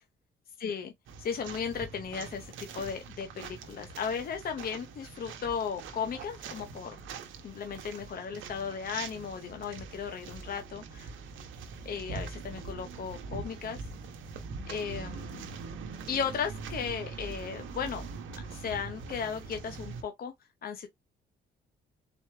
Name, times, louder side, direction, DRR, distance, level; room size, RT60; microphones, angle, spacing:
voice 1, 0.6-0.9 1.2-7.0 7.4-11.1 11.8-13.9 14.7-15.5 16.1-18.1 18.5-20.3 20.6-20.9, left 6 dB, 50° left, 0.8 m, -36 dB
sound 1, 1.1-20.0, right 4 dB, 80° right, 0.9 m, -43 dB
4.2 x 3.2 x 3.3 m
cardioid pair, 90°, 20 cm